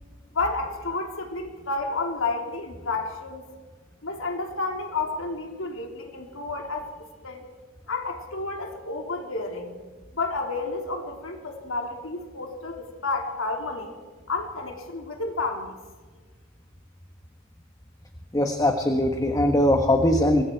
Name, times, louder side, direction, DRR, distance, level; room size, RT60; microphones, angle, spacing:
voice 1, 0.3-3.5 4.0-6.9 7.2-7.4 7.9-9.7 10.1-14.0 14.3-15.8, left 3 dB, 75° left, 3 dB, 3.4 m, -31 dB
voice 2, 18.3-20.4, left 1 dB, 20° left, 5 dB, 1.4 m, -21 dB
27.5 x 22.0 x 4.6 m, 1.4 s
head